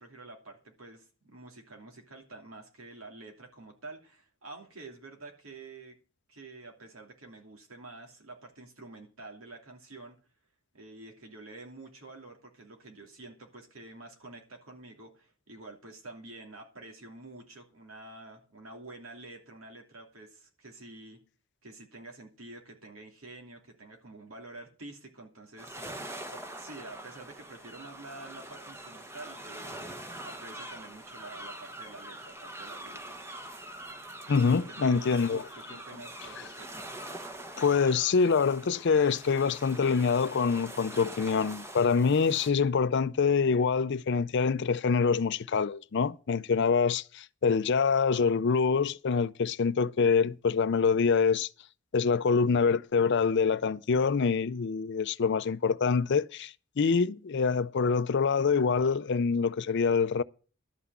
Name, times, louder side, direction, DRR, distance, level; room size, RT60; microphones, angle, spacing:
voice 1, 0.0-6.0 6.3-10.2 10.7-21.2 21.6-33.3 34.6-36.7, right 2 dB, 85° right, 2.9 m, -48 dB
sound 1, 25.6-42.5, right 1 dB, 15° right, 1.0 m, -44 dB
voice 2, 34.3-35.4 37.6-51.5 51.9-60.2, left 5 dB, 55° left, 0.5 m, -25 dB
12.0 x 5.9 x 8.3 m
head